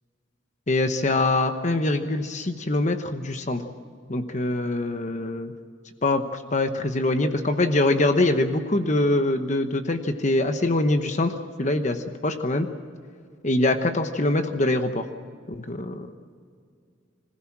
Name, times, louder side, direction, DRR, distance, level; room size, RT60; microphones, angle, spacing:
voice 1, 0.7-3.6 4.1-5.5 6.0-12.7 13.4-15.0 15.5-16.1, left 2 dB, 40° left, 7 dB, 1.0 m, -24 dB
26.0 x 16.0 x 7.4 m, 2.2 s
head